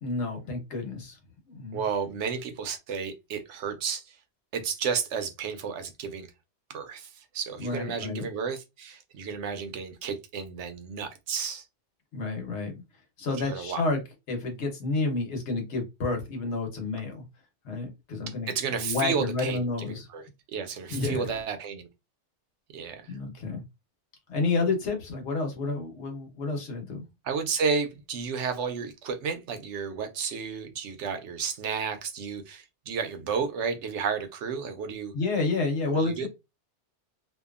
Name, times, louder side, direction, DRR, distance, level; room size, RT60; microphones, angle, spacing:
voice 1, 0.0-1.2 1.5-1.8 7.6-8.3 12.1-12.8 13.2-14.0 14.3-17.2 17.6-20.1 20.9-21.3 23.1-23.6 24.3-27.0 35.1-36.3, left 3 dB, 75° left, 1.2 m, -30 dB
voice 2, 1.7-4.0 4.5-6.3 6.7-11.6 13.4-13.8 18.5-21.8 22.7-23.0 27.3-35.1 35.9-36.3, right 6 dB, 80° right, 0.9 m, -32 dB
2.7 x 2.3 x 2.3 m
omnidirectional pair, 1.2 m